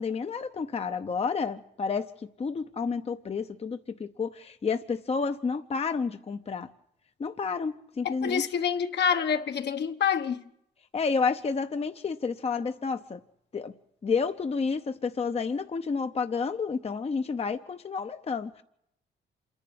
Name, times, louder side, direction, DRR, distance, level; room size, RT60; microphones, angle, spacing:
voice 1, 0.0-6.7 7.2-8.6 10.9-13.2 13.5-13.7 14.0-18.6, left 5 dB, 30° left, 0.8 m, -30 dB
voice 2, 8.0-10.4, left 7 dB, 60° left, 1.3 m, -27 dB
27.0 x 11.0 x 9.5 m
cardioid pair, 90°, 20 cm